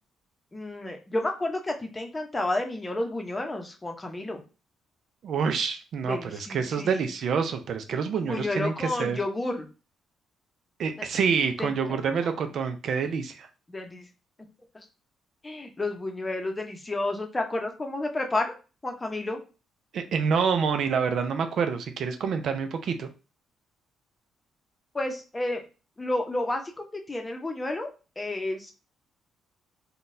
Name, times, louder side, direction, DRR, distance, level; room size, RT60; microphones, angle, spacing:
voice 1, 0.5-4.4 6.0-7.1 8.2-9.7 11.0-11.1 11.6-12.4 13.7-14.1 14.7-14.9 15.4-18.5 18.8-19.4 24.9-25.6 26.0-27.9 28.2-28.7, left 2 dB, 20° left, 4 dB, 0.7 m, -31 dB
voice 2, 5.2-9.2 10.8-13.5 19.9-23.1, right 6 dB, 65° right, 7 dB, 0.4 m, -27 dB
3.8 x 2.2 x 2.6 m, 0.32 s
cardioid pair, 90°, 0 cm